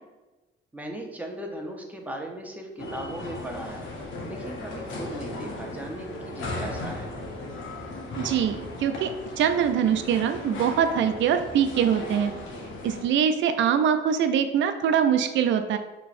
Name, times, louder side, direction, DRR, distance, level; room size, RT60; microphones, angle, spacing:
voice 1, 0.7-3.9 4.2-7.1, right 1 dB, 10° right, 1 dB, 0.7 m, -37 dB
sound 1, 2.8-13.0, left 2 dB, 75° left, 0.8 m, -36 dB
voice 2, 8.1-9.1 9.4-12.3 12.8-15.8, right 8 dB, 70° right, 8 dB, 0.5 m, -23 dB
5.4 x 3.0 x 2.5 m, 1.1 s
cardioid pair, 90°, 20 cm